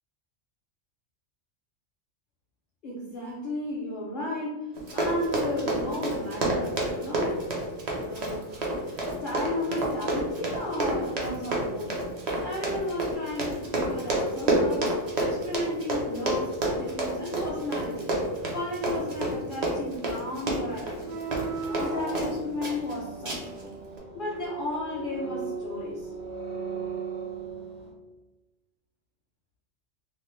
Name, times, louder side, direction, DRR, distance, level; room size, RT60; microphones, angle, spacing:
voice 1, 2.8-7.4 8.0-12.1 12.4-14.9 15.2-18.1 18.5-23.7 24.1-26.1, left 1 dB, 60° left, -3 dB, 0.6 m, -34 dB
Run, 4.7-22.3 22.6-22.9 23.2-23.6 24.0-24.1, right 1 dB, 45° right, 0.6 m, -29 dB
sound 1, 20.9-27.9, right 4 dB, 70° right, 0.9 m, -36 dB
2.9 x 2.2 x 3.1 m, 1.1 s
omnidirectional pair, 1.3 m